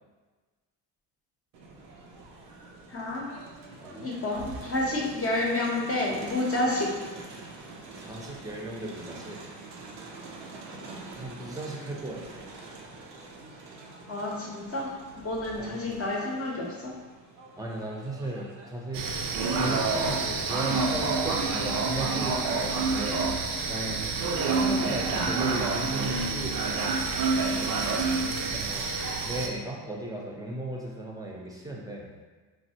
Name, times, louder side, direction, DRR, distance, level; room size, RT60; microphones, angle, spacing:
Crowd, 1.5-19.8, right 3 dB, 85° right, 0.6 m, -45 dB
voice 1, 2.9-3.3 3.9-6.9 10.7-11.0 14.1-16.9, left 2 dB, 30° left, -2 dB, 0.8 m, -30 dB
voice 2, 3.8-4.1 8.0-9.4 11.2-12.5 15.6-16.0 17.6-19.1 19.6-22.8 23.7-24.2 24.5-26.6 28.5-29.0 29.2-32.1, right 1 dB, 10° right, -2 dB, 0.6 m, -36 dB
sound 1, 18.9-29.5, right 4 dB, 50° right, 0.5 m, -27 dB
3.3 x 2.3 x 2.8 m, 1.4 s
hypercardioid pair, 65°, 47 cm